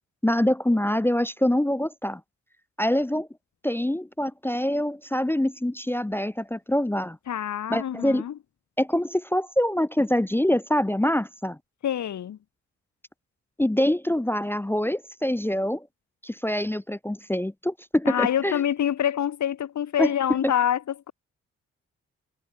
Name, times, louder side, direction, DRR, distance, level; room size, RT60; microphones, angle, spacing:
voice 1, 0.2-2.2 2.8-3.3 3.6-7.2 7.7-8.2 8.8-11.6 13.6-15.9 16.2-18.6 20.0-20.1, left 1 dB, 5° left, 0.7 m, -25 dB
voice 2, 7.3-8.3 11.8-12.4 18.0-20.8, left 10 dB, 55° left, 1.7 m, -26 dB
hypercardioid pair, 40°, 35 cm